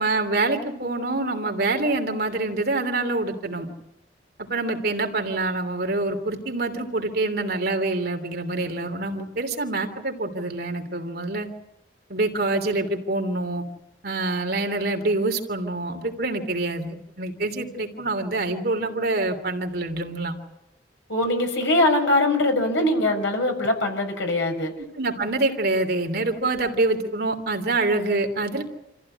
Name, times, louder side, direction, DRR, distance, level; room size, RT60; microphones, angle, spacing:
voice 1, 0.0-3.7 4.4-11.5 12.1-13.6 14.0-20.3 25.0-28.6, right 2 dB, 55° right, 4 dB, 3.0 m, -26 dB
voice 2, 21.1-24.7, left 1 dB, 90° left, 4 dB, 5.8 m, -22 dB
28.0 x 15.0 x 9.9 m, 0.90 s
head